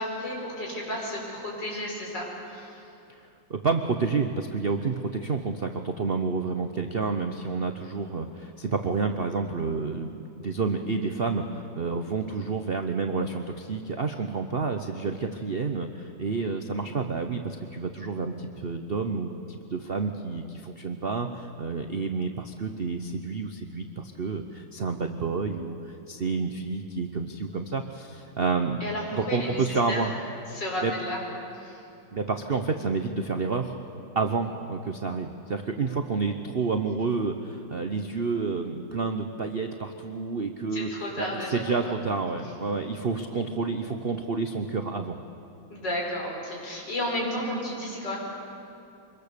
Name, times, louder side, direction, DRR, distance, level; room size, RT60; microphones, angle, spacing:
voice 1, 0.0-2.8 28.8-30.0 30.5-31.2 31.5-31.8 40.7-41.9 45.7-48.2, left 1 dB, 60° left, -2 dB, 5.7 m, -32 dB
voice 2, 3.5-25.8 26.1-28.8 29.1-30.1 30.8-30.9 32.1-33.8 34.1-40.9 41.2-45.2, right 4 dB, 45° right, 6 dB, 0.7 m, -29 dB
25.0 x 22.0 x 6.8 m, 2.7 s
omnidirectional pair, 2.1 m